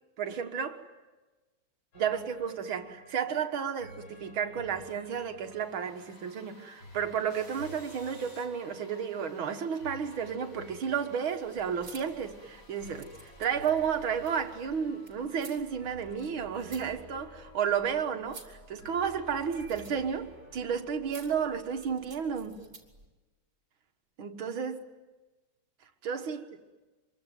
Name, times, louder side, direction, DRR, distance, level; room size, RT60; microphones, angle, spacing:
voice 1, 0.2-0.9 1.9-22.7 24.2-24.8 26.0-26.4, right 7 dB, 75° right, 2.4 m, -32 dB
sound 1, 1.9-21.4, left 1 dB, 70° left, 6.1 m, -53 dB
sound 2, 5.4-15.5, left 2 dB, 50° left, 4.3 m, -57 dB
sound 3, 11.4-23.1, right 2 dB, 30° right, 3.7 m, -54 dB
26.0 x 23.5 x 9.2 m
omnidirectional pair, 2.3 m